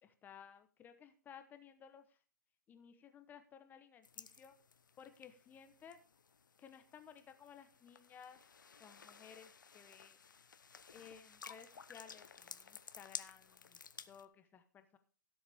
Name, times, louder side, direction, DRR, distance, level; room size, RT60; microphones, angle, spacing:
voice 1, 0.0-2.2 2.7-4.5 5.0-6.0 6.6-8.4 8.8-10.2 10.9-13.8 14.1-15.0, left 7 dB, 20° left, 9 dB, 1.0 m, -57 dB
sound 1, 4.0-14.2, left 6 dB, 85° left, 0.9 m, -54 dB
16.5 x 7.3 x 3.5 m, 0.38 s
hypercardioid pair, 135°, 10 cm